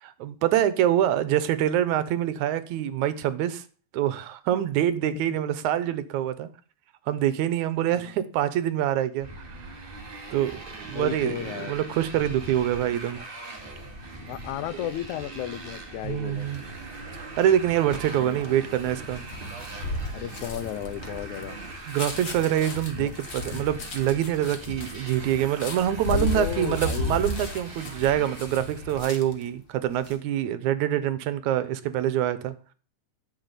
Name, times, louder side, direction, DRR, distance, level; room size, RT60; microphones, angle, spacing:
voice 1, 0.0-3.6 3.9-6.5 7.1-9.7 10.3-13.2 16.0-16.6 17.4-19.2 21.9-32.5, right 11 dB, 80° right, 2.3 m, -25 dB
Motorcycle, 9.2-29.0, right 2 dB, 20° right, 2.3 m, -41 dB
voice 2, 10.9-11.7 14.3-16.5 18.1-18.5 20.1-21.6 23.0-23.2 26.1-27.2, left 12 dB, 85° left, 2.2 m, -34 dB
sound 1, 16.3-21.7, right 5 dB, 50° right, 0.8 m, -44 dB
sound 2, 19.3-29.5 29.8-30.2, left 2 dB, 40° left, 2.0 m, -34 dB
12.0 x 6.3 x 8.0 m
omnidirectional pair, 3.3 m